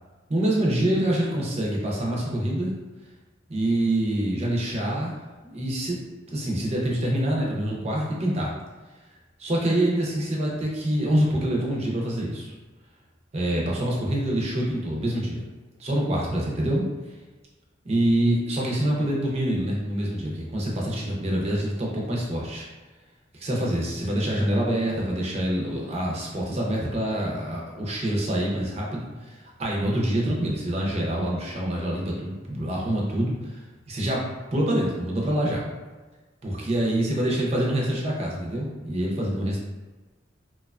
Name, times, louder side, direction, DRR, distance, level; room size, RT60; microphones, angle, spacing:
voice 1, 0.3-2.7 3.5-5.1 5.4-6.0 6.3-8.5 9.4-12.5 13.3-15.4 15.8-16.8 17.8-22.7 23.3-33.6 33.9-35.6 36.4-39.6, right 1 dB, 35° right, -3 dB, 0.5 m, -26 dB
2.8 x 2.2 x 2.3 m, 1.3 s
head